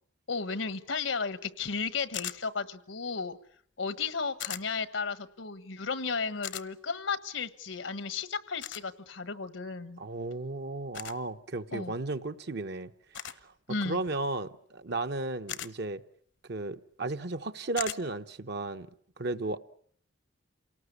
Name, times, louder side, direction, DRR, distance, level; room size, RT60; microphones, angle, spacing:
voice 1, 0.3-3.4 3.8-10.0 11.7-11.9 13.7-14.0, left 5 dB, 80° left, 1.3 m, -34 dB
sound 1, 2.1-2.4 4.4-4.6 6.4-6.7 8.6-8.8 10.9-11.2 13.1-13.4 15.5-15.7 17.8-18.0, left 11 dB, 65° left, 0.9 m, -37 dB
voice 2, 10.0-12.9 13.4-13.5 13.8-16.0 16.4-18.9 19.2-19.6, right 2 dB, 60° right, 1.0 m, -34 dB
28.0 x 18.5 x 8.3 m
head